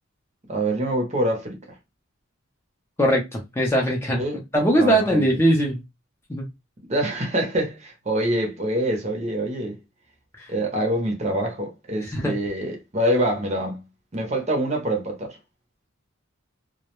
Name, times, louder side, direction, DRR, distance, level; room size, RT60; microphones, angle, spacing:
voice 1, 0.5-1.6 4.2-4.4 4.8-5.3 6.9-9.8 10.5-13.8 14.1-15.4, right 1 dB, 35° right, 0.6 m, -25 dB
voice 2, 3.0-4.2 4.5-5.8 6.3-6.4 10.4-10.5 12.0-12.3, right 1 dB, 10° left, 0.5 m, -21 dB
2.2 x 2.1 x 2.9 m
head